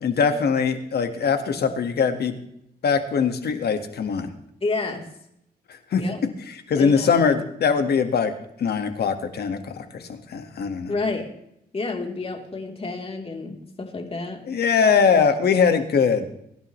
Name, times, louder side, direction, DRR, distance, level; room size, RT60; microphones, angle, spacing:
voice 1, 0.0-2.4 2.8-4.3 5.9-6.0 6.5-8.3 8.6-10.9 14.5-16.3, left 6 dB, 75° left, 7 dB, 1.8 m, -21 dB
voice 2, 4.6-5.0 6.0-6.2 6.8-7.3 10.9-11.3 11.7-14.4, left 3 dB, 35° left, 1 dB, 3.5 m, -29 dB
23.0 x 11.5 x 3.2 m, 0.76 s
cardioid pair, 85°, 17 cm